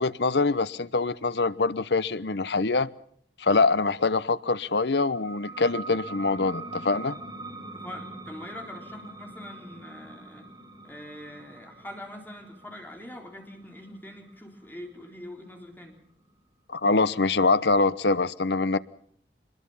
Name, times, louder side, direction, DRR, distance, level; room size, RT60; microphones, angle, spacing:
voice 1, 0.0-2.9 3.4-7.2 16.7-18.8, left 3 dB, 70° left, 0.9 m, -24 dB
sound 1, 5.1-16.4, right 3 dB, 20° right, 6.1 m, -43 dB
voice 2, 7.7-10.5 10.8-16.0, left 1 dB, 10° left, 4.0 m, -43 dB
25.0 x 21.5 x 5.7 m
head